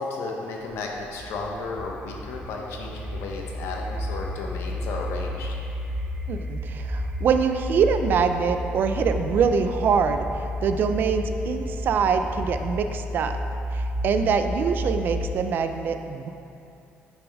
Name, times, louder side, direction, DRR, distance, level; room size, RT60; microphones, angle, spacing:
voice 1, 0.0-5.5, left 3 dB, 80° left, 0 dB, 0.9 m, -33 dB
sound 1, 0.8-15.5, left 1 dB, 30° right, 0.7 m, -32 dB
voice 2, 6.3-10.3 10.6-13.3 13.7-16.3, right 6 dB, 50° right, 8 dB, 0.4 m, -24 dB
6.9 x 6.1 x 3.4 m, 2.8 s
cardioid pair, 150°, 4 cm